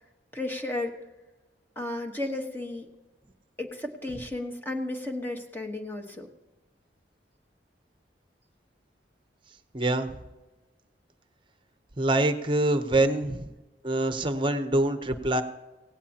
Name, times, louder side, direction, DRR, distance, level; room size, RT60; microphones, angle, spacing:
voice 1, 0.3-1.0 1.8-2.9 3.6-6.3, left 2 dB, 10° left, 3 dB, 1.2 m, -33 dB
voice 2, 9.7-10.1 12.0-13.5 13.8-15.4, right 2 dB, 30° right, 9 dB, 0.9 m, -25 dB
17.5 x 17.0 x 2.9 m, 1.1 s
head